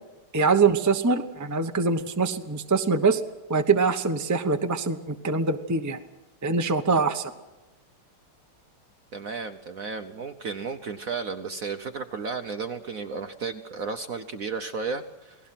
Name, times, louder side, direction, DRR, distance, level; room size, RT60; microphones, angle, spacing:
voice 1, 0.3-3.2 3.5-6.0 6.4-7.3, right 4 dB, 20° right, 6 dB, 0.5 m, -23 dB
voice 2, 9.1-15.5, right 5 dB, 55° right, 8 dB, 1.0 m, -33 dB
28.5 x 19.0 x 5.9 m, 1.1 s
omnidirectional pair, 2.4 m